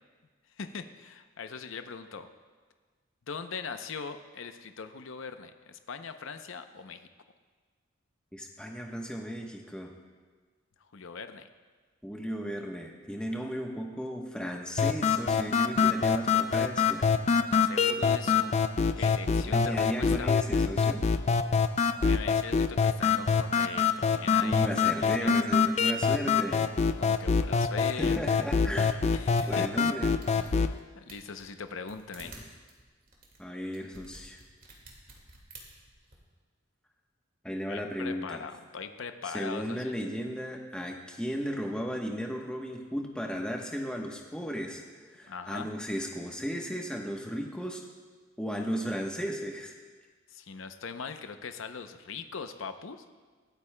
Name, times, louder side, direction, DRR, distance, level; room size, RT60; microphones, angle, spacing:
voice 1, 0.6-2.3 3.3-7.1 10.9-11.5 17.5-18.5 19.0-20.3 22.0-24.6 25.0-25.3 27.0-28.5 29.1-29.7 30.3-30.6 30.9-32.4 37.7-39.9 45.3-45.7 50.3-53.0, left 5 dB, 70° left, 8 dB, 0.6 m, -41 dB
voice 2, 8.3-9.9 12.0-17.1 19.0-19.1 19.4-21.0 24.4-26.7 27.8-29.0 29.5-30.1 32.2-32.5 33.4-34.4 37.4-38.4 39.2-44.8 45.1-47.8 48.4-49.7, equal, 5° left, 0 dB, 1.0 m, -35 dB
sound 1, 14.8-30.8, left 5 dB, 30° left, 0.3 m, -25 dB
sound 2, 29.4-29.5 29.9-30.0 30.2-30.8 31.1-36.2, right 3 dB, 45° right, 1.9 m, -51 dB
25.0 x 8.4 x 2.2 m, 1.5 s
head